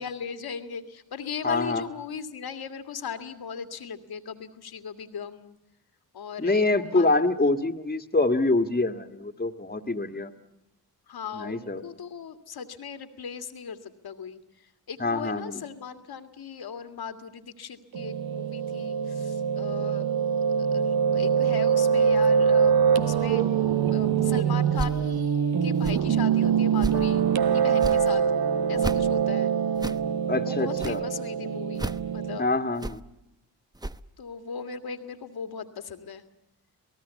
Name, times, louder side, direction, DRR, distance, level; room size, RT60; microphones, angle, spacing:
voice 1, 0.0-5.6 6.1-7.2 11.1-14.4 14.9-20.1 20.6-23.5 23.9-27.2 27.5-28.3 28.7-29.5 30.4-32.6 32.8-32.9 34.2-36.2, left 6 dB, 70° left, 8 dB, 2.1 m, -38 dB
voice 2, 1.4-1.8 6.4-10.3 11.3-11.8 15.0-15.6 30.3-31.0 32.4-33.0, left 2 dB, 25° left, 6 dB, 1.9 m, -25 dB
Piano, 17.9-32.4, right 7 dB, 65° right, 1.4 m, -24 dB
sound 1, 24.7-25.0 25.7-26.0 26.7-27.1 27.7-28.0 28.7-29.0 29.7-30.0 30.7-31.0 31.7-32.0 32.8-33.0 33.7-34.0, right 1 dB, 10° right, 1.0 m, -33 dB
28.0 x 18.5 x 8.3 m, 0.92 s
supercardioid pair, 50°, 39 cm